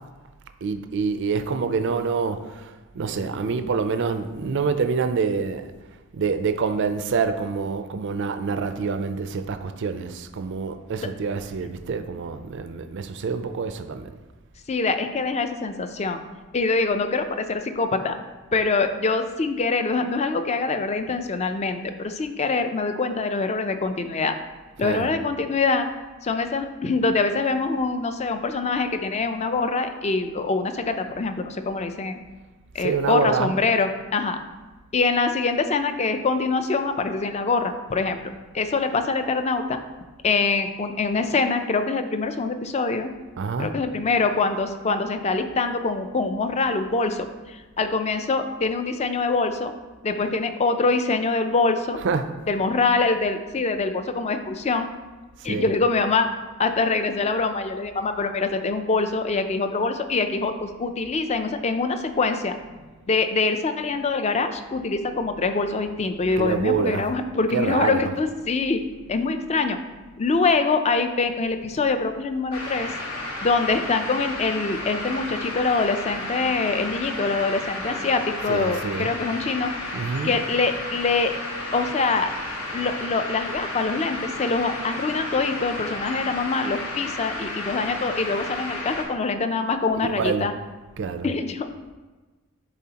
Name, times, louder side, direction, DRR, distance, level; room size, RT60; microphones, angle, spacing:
voice 1, 0.6-5.7 6.1-14.1 24.8-25.1 32.8-33.5 43.4-43.7 52.0-52.2 55.5-55.7 66.4-67.1 67.5-68.1 78.5-79.1 79.9-80.3 90.0-90.5 91.0-91.3, right 5 dB, 55° right, 9 dB, 0.4 m, -26 dB
voice 2, 14.7-16.2 16.5-18.2 18.5-24.4 24.8-25.9 26.2-32.2 32.7-34.4 34.9-38.2 38.5-39.8 40.2-43.1 43.6-49.7 50.0-52.0 52.5-54.9 55.4-56.3 56.6-62.6 63.1-68.8 69.1-69.8 70.2-72.9 73.4-79.7 80.2-81.3 81.7-82.3 82.7-90.5 91.2-91.7, left 3 dB, 30° left, 8 dB, 0.4 m, -24 dB
sound 1, 72.5-89.0, left 2 dB, 75° left, 1.3 m, -33 dB
10.5 x 4.0 x 2.9 m, 1.2 s
head